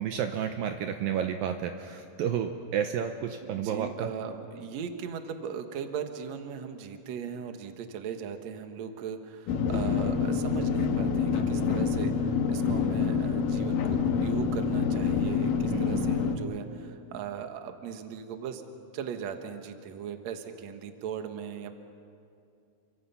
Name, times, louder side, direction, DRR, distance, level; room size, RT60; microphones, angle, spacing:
voice 1, 0.0-4.1 15.7-16.1, right 8 dB, 75° right, 6 dB, 2.4 m, -31 dB
voice 2, 3.4-18.6 18.9-21.7, right 7 dB, 60° right, 6 dB, 2.1 m, -38 dB
sound 1, 9.5-16.4, left 5 dB, 65° left, 2.8 m, -27 dB
30.0 x 24.5 x 5.7 m, 2.5 s
omnidirectional pair, 4.5 m